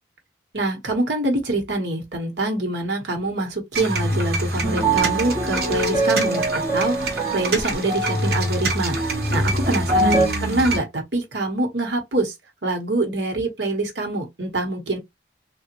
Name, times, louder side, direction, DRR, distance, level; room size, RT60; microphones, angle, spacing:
voice 1, 0.5-9.0 9.3-12.3 12.6-15.0, right 2 dB, 75° right, 1.3 m, -25 dB
sound 1, 3.7-10.8, right 1 dB, 55° right, 1.1 m, -25 dB
sound 2, 4.6-10.3, right 2 dB, 25° right, 0.8 m, -24 dB
3.5 x 2.3 x 2.9 m
head